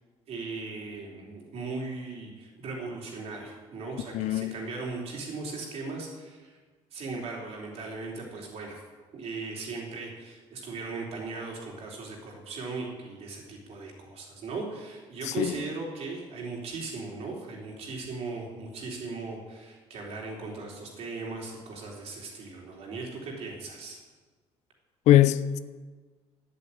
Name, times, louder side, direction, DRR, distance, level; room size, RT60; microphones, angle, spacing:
voice 1, 0.3-6.6 6.9-8.8 9.1-24.0, right 3 dB, 60° right, 3.6 m, -38 dB
voice 2, 4.1-4.6 15.2-15.6 25.1-25.6, left 13 dB, 75° left, 0.6 m, -21 dB
10.0 x 8.7 x 8.7 m
cardioid pair, 120°, 12 cm